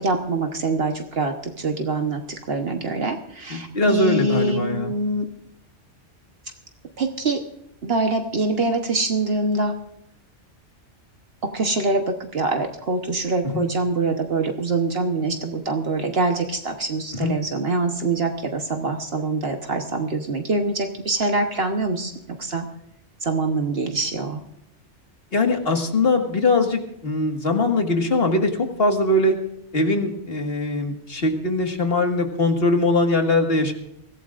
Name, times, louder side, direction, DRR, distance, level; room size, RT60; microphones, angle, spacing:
voice 1, 0.0-2.2 2.5-5.3 7.0-7.4 7.8-9.7 11.5-22.1 22.4-22.6 23.2-24.4, right 3 dB, 55° right, 4 dB, 1.3 m, -24 dB
voice 2, 3.5-4.9 13.4-13.6 17.1-17.3 25.3-29.4 29.7-33.7, left 2 dB, 55° left, 4 dB, 2.0 m, -21 dB
23.5 x 16.0 x 2.5 m, 0.79 s
omnidirectional pair, 1.2 m